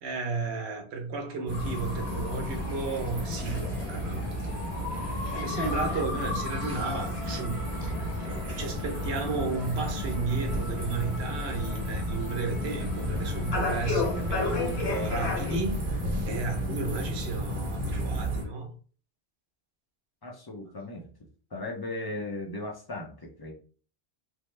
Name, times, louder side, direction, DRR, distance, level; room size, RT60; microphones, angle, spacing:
voice 1, 0.0-4.6 4.9-7.9 8.2-18.7, right 4 dB, 75° right, 3 dB, 1.0 m, -34 dB
sound 1, 1.5-15.6, left 4 dB, 70° left, 1.0 m, -36 dB
sound 2, 1.5-18.4, equal, 55° right, 1.0 m, -33 dB
voice 2, 20.2-21.1 21.5-23.5, left 2 dB, 40° left, 0 dB, 0.3 m, -37 dB
3.1 x 2.1 x 3.1 m, 0.41 s
omnidirectional pair, 1.1 m